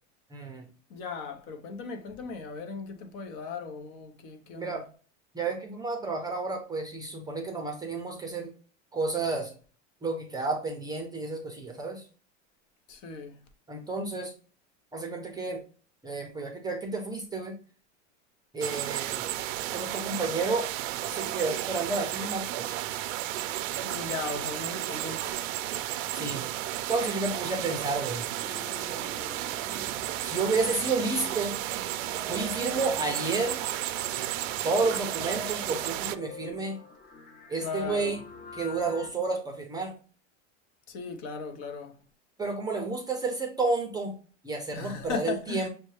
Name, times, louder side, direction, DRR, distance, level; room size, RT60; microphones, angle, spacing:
voice 1, 0.3-0.7 4.5-4.9 5.3-8.5 8.9-9.5 10.0-12.0 13.7-14.3 14.9-15.6 16.0-17.5 18.5-19.3 19.7-20.7 21.1-22.7 26.1-26.5 26.9-28.3 30.2-31.6 32.3-33.6 34.6-36.8 37.5-38.2 38.5-40.0 42.4-44.1 44.4-45.7, right 3 dB, 10° right, 0.6 m, -31 dB
voice 2, 0.9-4.8 12.9-13.4 23.8-25.4 37.6-38.2 40.9-41.9 44.7-45.7, left 5 dB, 50° left, 0.9 m, -37 dB
sound 1, 18.6-36.2, right 13 dB, 85° right, 0.5 m, -33 dB
sound 2, 28.4-39.1, left 4 dB, 25° left, 0.8 m, -47 dB
6.6 x 2.2 x 3.1 m
supercardioid pair, 135°, 37 cm